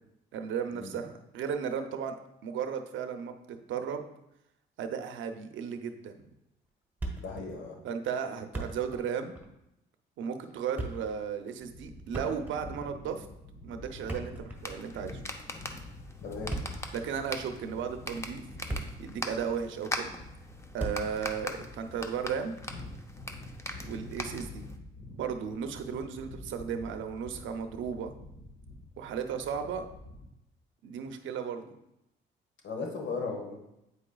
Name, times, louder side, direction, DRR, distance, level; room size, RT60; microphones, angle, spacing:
voice 1, 0.3-2.2 2.4-4.0 4.8-6.2 7.8-9.4 10.2-13.3 13.6-15.2 16.9-18.4 19.0-20.1 20.7-22.6 23.8-24.7 25.1-28.1 29.0-29.9 30.8-31.7, right 7 dB, 75° right, 6 dB, 0.6 m, -35 dB
Thump thud, 7.0-7.5 7.8-7.9 8.3-9.1 9.3-9.5 10.5-11.1 12.1-12.7 13.9-14.9 16.3-16.9 17.7-17.8 18.4-19.2 19.4-19.5 20.8-21.2, right 2 dB, 10° right, 1.1 m, -37 dB
voice 2, 7.2-7.8 16.2-16.5 32.6-33.6, left 4 dB, 75° left, 1 dB, 1.3 m, -36 dB
sound 1, 11.6-30.2, left 2 dB, 45° left, 1.6 m, -47 dB
sound 2, 14.5-24.8, left 1 dB, 15° left, 0.7 m, -41 dB
8.2 x 4.9 x 2.3 m, 0.85 s
cardioid pair, 90°, 20 cm